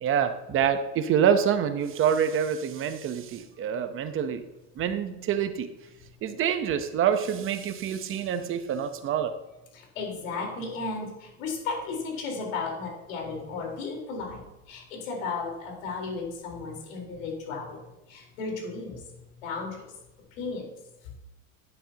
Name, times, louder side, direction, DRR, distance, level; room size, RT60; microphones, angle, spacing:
voice 1, 0.0-4.4 4.8-5.7 6.2-9.3, right 8 dB, 35° right, 9 dB, 0.8 m, -26 dB
voice 2, 9.7-17.8 18.1-19.0 19.4-19.7 20.4-20.6, left 4 dB, 85° left, 0 dB, 4.1 m, -34 dB
12.0 x 11.0 x 2.9 m, 0.97 s
supercardioid pair, 130°, 39 cm